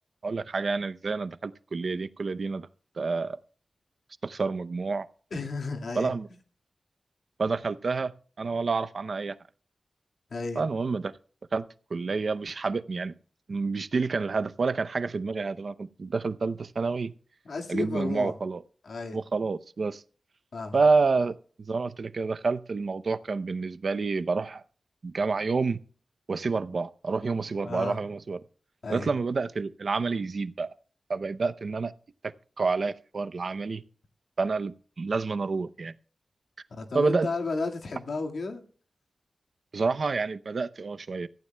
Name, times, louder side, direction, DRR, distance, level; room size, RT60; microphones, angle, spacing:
voice 1, 0.2-2.7 3.0-3.4 4.2-5.1 5.9-6.3 7.4-8.1 8.4-9.3 10.6-11.1 11.5-11.6 11.9-13.1 13.5-17.1 17.7-18.6 19.1-20.0 20.7-24.6 25.0-25.8 26.3-28.4 28.9-30.7 31.1-31.9 32.2-33.8 34.4-35.9 36.9-37.3 39.7-41.3, right 4 dB, 55° right, 12 dB, 0.6 m, -28 dB
voice 2, 5.3-6.1 10.3-10.6 17.5-18.3 18.8-19.2 20.5-20.8 27.6-28.0 28.8-29.1 36.7-38.6, left 3 dB, 70° left, 3 dB, 1.9 m, -33 dB
16.5 x 14.5 x 2.2 m, 0.41 s
wide cardioid pair, 140°, 0 cm